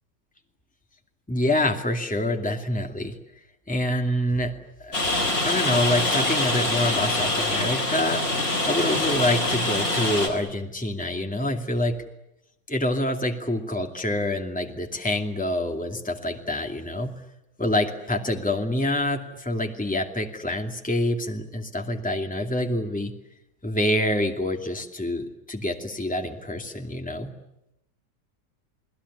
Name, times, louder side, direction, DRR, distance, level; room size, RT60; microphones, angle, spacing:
voice 1, 1.3-3.2 3.7-4.5 4.8-5.0 5.4-8.2 8.7-12.0 12.7-17.1 17.6-23.1 23.6-27.3, left 1 dB, 5° left, 3 dB, 2.5 m, -26 dB
Rain, 4.9-10.3, left 2 dB, 50° left, 5.4 m, -24 dB
29.5 x 20.0 x 9.8 m, 0.85 s
omnidirectional pair, 1.9 m